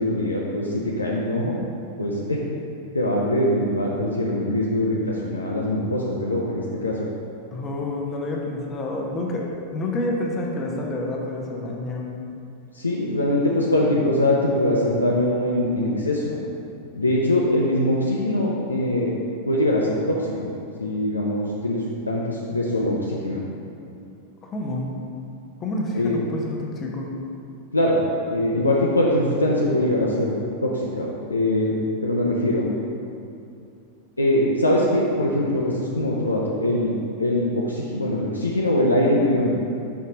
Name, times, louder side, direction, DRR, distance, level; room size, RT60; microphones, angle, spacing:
voice 1, 0.0-1.6 2.0-2.4 2.9-7.1 12.7-16.4 17.0-19.1 19.5-20.5 20.8-23.4 25.9-26.1 27.7-28.0 28.3-31.8 32.0-32.7 34.2-39.5, left 1 dB, 80° left, -4 dB, 0.5 m, -22 dB
voice 2, 7.5-12.1 24.4-24.9 25.6-27.1, left 2 dB, 25° left, -1 dB, 0.9 m, -28 dB
5.6 x 4.7 x 3.9 m, 2.6 s
figure-of-eight pair, 90°, 0 cm